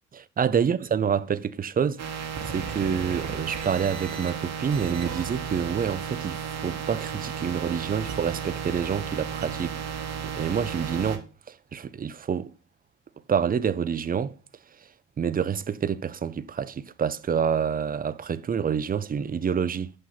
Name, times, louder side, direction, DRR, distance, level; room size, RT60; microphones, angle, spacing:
voice 1, 0.4-2.0 2.4-12.5 13.3-14.3 15.2-19.9, right 7 dB, 30° right, 0.5 m, -27 dB
sound 1, 2.0-11.2, right 7 dB, 60° right, 1.4 m, -33 dB
6.4 x 5.7 x 5.7 m
cardioid pair, 90°, 30 cm